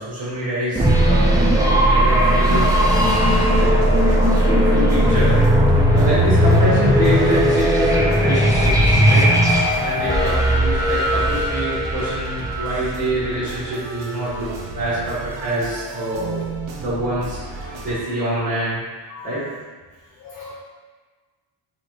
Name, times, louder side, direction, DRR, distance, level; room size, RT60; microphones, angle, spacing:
voice 1, 0.0-3.0 3.5-5.4 5.9-9.4 9.8-16.5 16.7-19.4, right 1 dB, 35° right, -11 dB, 1.2 m, -26 dB
sound 1, 0.8-13.5, equal, 10° right, 0.3 m, -17 dB
sound 2, 2.4-18.0, right 3 dB, 80° right, 0.7 m, -34 dB
voice 2, 19.1-19.4 20.2-20.5, left 5 dB, 50° left, -4 dB, 0.5 m, -39 dB
4.0 x 2.9 x 3.1 m, 1.4 s
wide cardioid pair, 160°, 45 cm